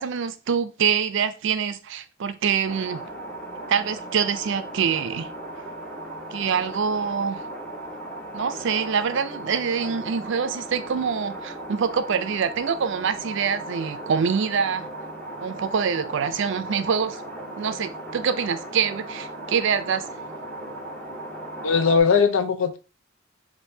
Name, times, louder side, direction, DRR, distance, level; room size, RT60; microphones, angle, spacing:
voice 1, 0.0-3.0 3.7-5.3 6.3-7.4 8.3-14.9 15.4-17.2 17.6-20.0, right 6 dB, 65° right, 0.4 m, -25 dB
sound 1, 2.7-22.0, right 1 dB, 10° left, 1.0 m, -37 dB
voice 2, 21.6-22.8, left 5 dB, 75° left, 0.6 m, -19 dB
5.3 x 2.6 x 2.7 m
head